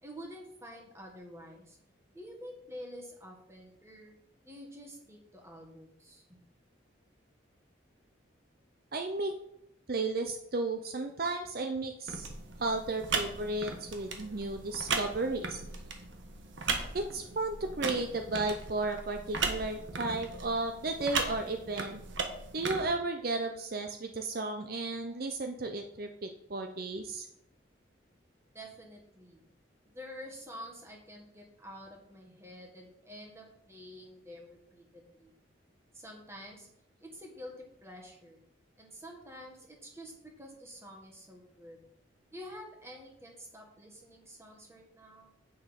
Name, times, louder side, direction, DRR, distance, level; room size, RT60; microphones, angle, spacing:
voice 1, 0.0-1.8 2.1-4.2 4.4-6.4 28.5-29.4 29.8-35.3 35.9-36.7 37.0-38.4 38.8-41.8 42.3-45.3, equal, 15° right, 1 dB, 1.7 m, -48 dB
voice 2, 8.9-9.3 9.9-12.3 12.6-15.6 16.9-22.0 22.5-27.3, right 2 dB, 50° right, 6 dB, 0.6 m, -34 dB
sound 1, 12.1-22.8, right 4 dB, 75° right, 1.4 m, -37 dB
8.4 x 6.5 x 5.2 m, 0.78 s
head